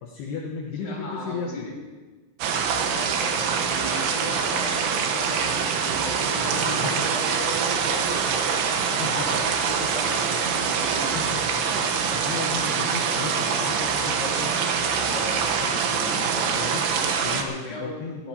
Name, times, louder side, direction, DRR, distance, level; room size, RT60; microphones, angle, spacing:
voice 1, 0.0-1.7 6.7-7.1 9.0-9.4 11.1-11.6 12.1-14.5 15.1-18.2, left 5 dB, 70° left, -1 dB, 2.9 m, -35 dB
voice 2, 0.8-1.7 2.7-11.2 14.8-15.3 17.6-18.0 18.2-18.3, left 2 dB, 25° left, -3 dB, 3.7 m, -37 dB
sound 1, 2.4-17.4, right 6 dB, 70° right, 2.7 m, -24 dB
21.0 x 16.5 x 2.9 m, 1.3 s
omnidirectional pair, 5.5 m